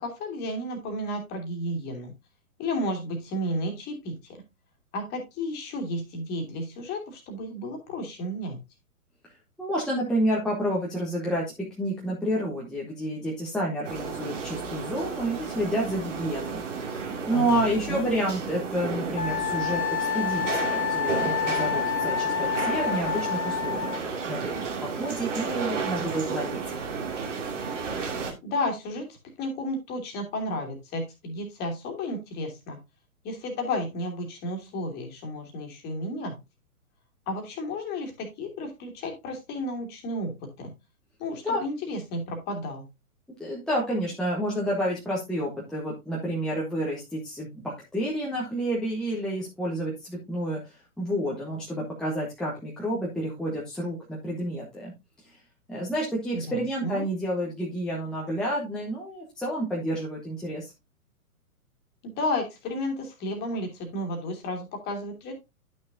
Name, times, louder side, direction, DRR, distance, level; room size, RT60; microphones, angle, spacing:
voice 1, 0.0-2.1 2.6-4.4 4.9-8.6 17.3-18.1 28.4-29.1 29.4-32.8 33.2-36.4 37.3-40.7 41.2-42.9 56.3-56.5 56.8-57.0 62.0-65.3, left 1 dB, 20° left, 3 dB, 2.3 m, -32 dB
voice 2, 9.6-11.5 11.8-16.6 16.9-24.0 24.3-26.8 41.4-41.6 43.4-54.9 55.2-55.3 55.7-60.7, right 1 dB, ahead, -6 dB, 1.1 m, -30 dB
sound 1, 13.8-28.3, right 5 dB, 55° right, 2.5 m, -32 dB
Wind instrument woodwind instrument, 19.2-24.0, left 8 dB, 65° left, 1.4 m, -28 dB
11.0 x 6.4 x 2.6 m, 0.23 s
figure-of-eight pair, 125°, 45 cm